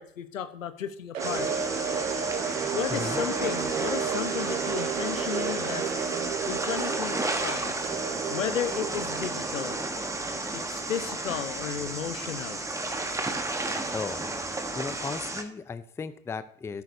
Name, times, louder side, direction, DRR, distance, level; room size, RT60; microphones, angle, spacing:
voice 1, 0.0-1.5 2.7-5.9 6.5-7.7 8.3-9.8 10.3-12.6, left 9 dB, 85° left, 11 dB, 1.1 m, -34 dB
sound 1, 1.1-11.2, right 7 dB, 90° right, 1.1 m, -33 dB
sound 2, 1.2-15.4, right 2 dB, 10° right, 1.2 m, -33 dB
voice 2, 2.9-3.2 13.9-14.3 14.8-16.8, left 5 dB, 5° left, 13 dB, 0.4 m, -35 dB
sound 3, 5.0-12.8, right 3 dB, 50° right, 3.9 m, -49 dB
13.0 x 11.0 x 2.7 m, 0.66 s
hypercardioid pair, 95°, 38 cm